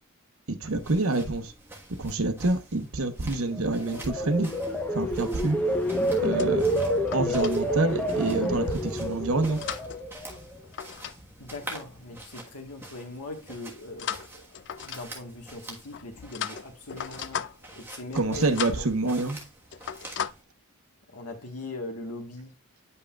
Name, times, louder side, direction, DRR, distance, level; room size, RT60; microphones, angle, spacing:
voice 1, 0.5-1.5 2.0-4.5 4.9-5.6 6.2-6.7 7.1-9.6 18.1-19.4, right 2 dB, 65° right, 1.0 m, -27 dB
sound 1, 0.7-20.4, right 2 dB, 10° right, 1.3 m, -47 dB
sound 2, 3.5-10.7 11.1-11.5, equal, 5° left, 0.9 m, -28 dB
sound 3, 6.2-7.6 8.4-8.8 9.4-11.2 11.4-11.7 14.0-15.3 15.9-17.8 18.1-18.3 18.5-18.9 19.3-19.5 19.7-20.3, left 9 dB, 55° left, 0.4 m, -37 dB
voice 2, 11.4-14.5 14.9-17.4 17.8-19.1 21.1-22.5, left 2 dB, 85° left, 1.4 m, -40 dB
9.5 x 5.6 x 2.3 m
head